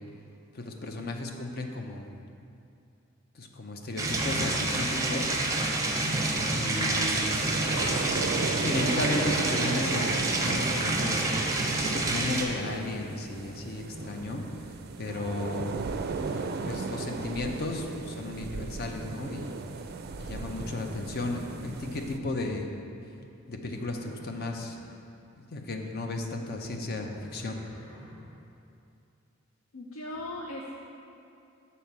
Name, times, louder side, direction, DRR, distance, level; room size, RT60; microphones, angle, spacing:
voice 1, 0.5-2.1 3.3-5.4 6.5-7.4 7.7-8.1 8.6-10.1 10.4-14.4 15.0-15.8 16.3-19.6 20.2-22.7 23.5-24.8 25.4-27.6, left 2 dB, 50° left, 3 dB, 0.7 m, -34 dB
sound 1, 4.0-12.4, right 2 dB, 15° right, 0.7 m, -28 dB
sound 2, 7.0-22.2, right 4 dB, 50° right, 0.4 m, -36 dB
Livestock farm animals working animals, 11.1-11.6 11.9-12.4 13.7-14.7 16.3-18.1 20.4-21.7 23.7-24.8 26.6-28.4, equal, 10° left, 1.7 m, -48 dB
voice 2, 29.7-30.7, left 1 dB, 90° left, -1 dB, 0.6 m, -38 dB
7.0 x 4.2 x 6.0 m, 2.7 s
head